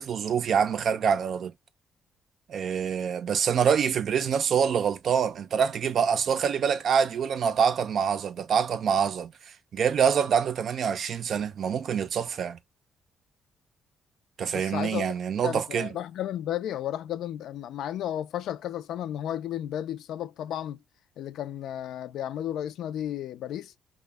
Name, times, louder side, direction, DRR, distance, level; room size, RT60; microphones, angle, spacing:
voice 1, 0.0-1.5 2.5-9.3 9.7-12.6 14.4-15.9, right 7 dB, 60° right, 0.4 m, -25 dB
voice 2, 14.5-15.0 15.4-20.8 21.2-23.7, left 11 dB, 80° left, 0.3 m, -33 dB
2.1 x 2.1 x 3.3 m
cardioid pair, 90°, 0 cm